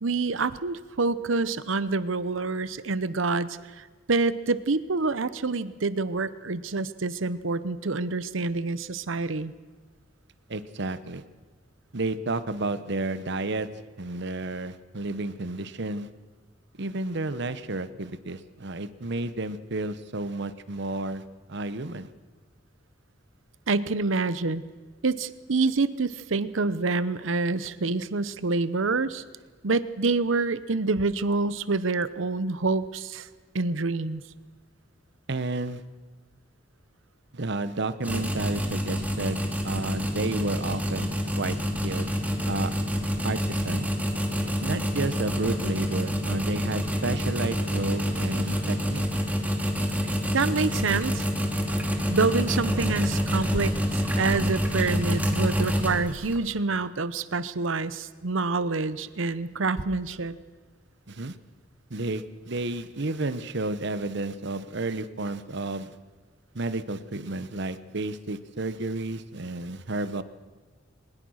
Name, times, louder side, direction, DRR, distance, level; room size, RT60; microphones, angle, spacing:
voice 1, 0.0-3.5 3.8-9.5 23.7-24.6 25.0-29.2 29.6-33.3 33.5-34.2 50.3-51.2 52.1-53.7 54.2-60.3, right 3 dB, 85° right, 15 dB, 0.8 m, -27 dB
voice 2, 10.5-11.2 11.9-13.7 14.0-16.1 16.8-21.2 21.5-22.1 35.3-35.8 37.3-41.6 41.8-42.1 42.4-42.7 43.2-43.9 44.6-49.1 61.1-61.4 61.9-66.0 66.5-70.2, right 2 dB, 65° right, 13 dB, 1.1 m, -31 dB
sound 1, 38.0-56.4, equal, 10° right, 2.3 m, -27 dB
21.5 x 20.0 x 6.5 m, 1.4 s
head